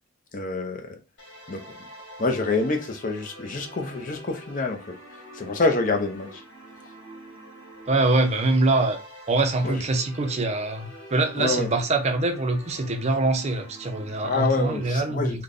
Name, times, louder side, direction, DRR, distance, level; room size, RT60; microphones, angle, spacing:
voice 1, 0.3-1.0 1.5-1.7 2.2-4.8 5.1-6.4 9.6-9.8 11.4-11.7 14.2-15.4, left 3 dB, 40° left, 0.6 m, -27 dB
sound 1, 1.2-14.9, equal, 55° left, 1.9 m, -45 dB
voice 2, 7.9-9.0 9.3-15.4, right 2 dB, 30° right, 0.5 m, -24 dB
3.3 x 2.2 x 3.8 m
head